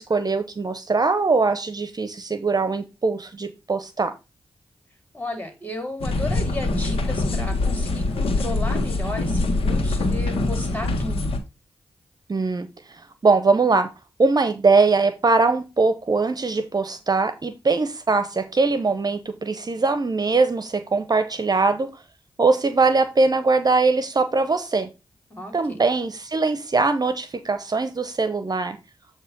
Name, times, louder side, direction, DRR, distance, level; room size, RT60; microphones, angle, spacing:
voice 1, 0.0-4.1 12.3-13.9 14.2-21.9 22.4-24.9 25.5-28.8, right 3 dB, 45° right, 0.9 m, -21 dB
voice 2, 5.1-11.3 25.3-25.8, left 1 dB, 15° left, 3.9 m, -33 dB
sound 1, 6.0-11.4, left 2 dB, 85° left, 1.5 m, -24 dB
8.4 x 3.0 x 5.9 m
cardioid pair, 45°, 9 cm